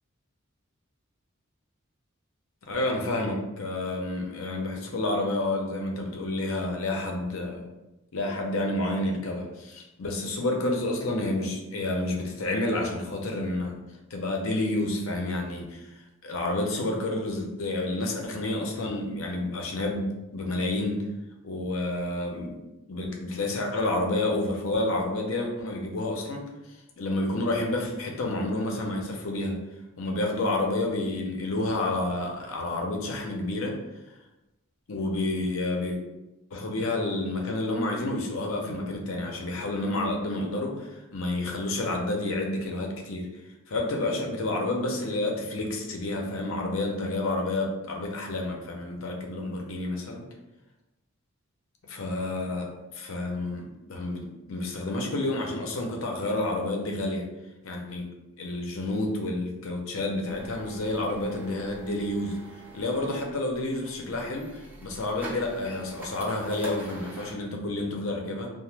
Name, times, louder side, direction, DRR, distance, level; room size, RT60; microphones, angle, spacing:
voice 1, 2.7-7.6 8.1-13.8 14.1-15.8 16.2-21.0 21.4-22.5 22.9-26.5 27.0-29.6 30.0-33.8 34.9-36.0 36.5-43.3 43.7-50.2 51.8-52.7 52.9-57.2 57.6-58.1 58.4-62.4 62.7-64.5 64.8-68.5, left 2 dB, 70° left, 1 dB, 0.6 m, -29 dB
sound 1, 60.2-67.3, right 2 dB, 10° right, 0.5 m, -45 dB
2.8 x 2.0 x 3.2 m, 0.98 s
head